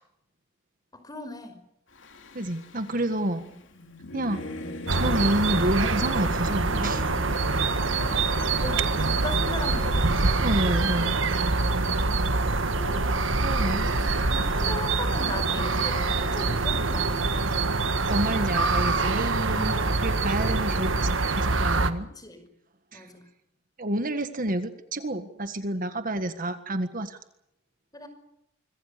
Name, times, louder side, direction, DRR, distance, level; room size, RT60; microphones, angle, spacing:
voice 1, 0.9-1.6 3.3-3.6 7.9-10.3 12.8-17.3 19.5-20.0 22.0-22.5 22.9-23.3 27.9-28.1, left 2 dB, 20° left, 8 dB, 5.6 m, -39 dB
Singing / Musical instrument, 1.9-11.5, left 1 dB, 65° left, 3.2 m, -41 dB
voice 2, 2.4-3.4 4.1-4.4 4.9-7.0 10.4-11.1 13.4-13.9 18.1-22.1 22.9-23.1 23.8-27.2, right 1 dB, 40° right, 9 dB, 1.7 m, -29 dB
sound 1, 4.9-21.9, right 3 dB, 65° right, 1.7 m, -25 dB
26.0 x 24.0 x 6.8 m, 0.79 s
head